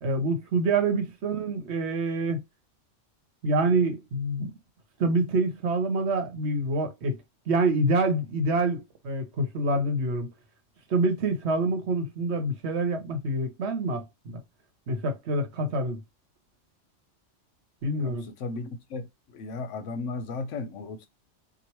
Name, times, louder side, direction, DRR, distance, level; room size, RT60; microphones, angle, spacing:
voice 1, 0.0-2.4 3.4-4.5 5.0-7.2 7.5-10.3 10.9-14.4 14.9-16.0 17.8-18.3, right 2 dB, 65° right, 1.0 m, -26 dB
voice 2, 18.0-19.0 19.3-21.1, left 3 dB, 80° left, 1.0 m, -35 dB
2.9 x 2.4 x 2.9 m
omnidirectional pair, 1.3 m